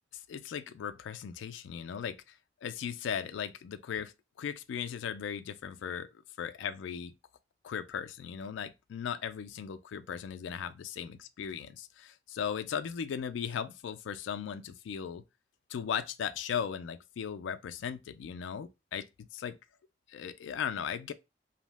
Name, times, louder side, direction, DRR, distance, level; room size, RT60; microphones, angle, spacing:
voice 1, 0.1-2.2 2.6-6.1 6.4-7.1 7.6-15.2 15.7-19.6 20.1-21.1, left 7 dB, 85° left, 0.3 m, -37 dB
2.7 x 2.1 x 3.2 m
head